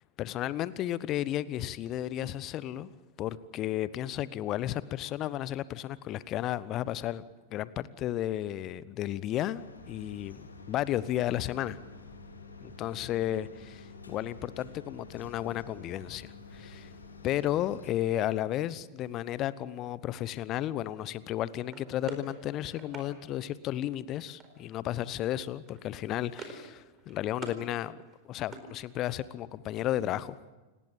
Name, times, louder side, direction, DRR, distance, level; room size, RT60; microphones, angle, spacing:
voice 1, 0.2-2.9 3.2-7.2 7.5-11.8 12.6-16.9 17.2-28.0 28.3-30.4, left 13 dB, 35° left, 18 dB, 0.9 m, -33 dB
sound 1, 9.5-17.9, left 3 dB, 75° left, 3.3 m, -49 dB
sound 2, 21.7-23.1 24.4-24.8 25.1-25.3 25.7-26.7 27.0-27.6 28.0-29.3, right 5 dB, 25° right, 4.3 m, -46 dB
28.5 x 20.0 x 7.4 m, 1.2 s
figure-of-eight pair, 90°, 0 cm